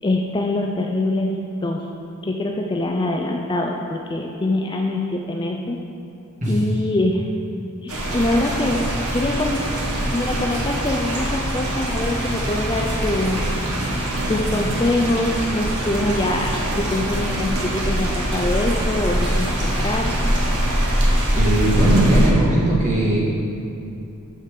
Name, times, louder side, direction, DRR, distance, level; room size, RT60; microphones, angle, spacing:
voice 1, 0.0-1.3 1.6-1.9 2.2-5.8 6.5-7.3 7.8-8.8 9.1-9.7 10.1-13.4 14.3-20.2, left 1 dB, 20° left, 1 dB, 0.4 m, -24 dB
sound 1, 7.9-22.3, equal, 90° right, 1.5 m, -23 dB
voice 2, 21.3-23.2, right 1 dB, 35° right, -6 dB, 1.8 m, -18 dB
6.5 x 6.0 x 6.6 m, 2.7 s
head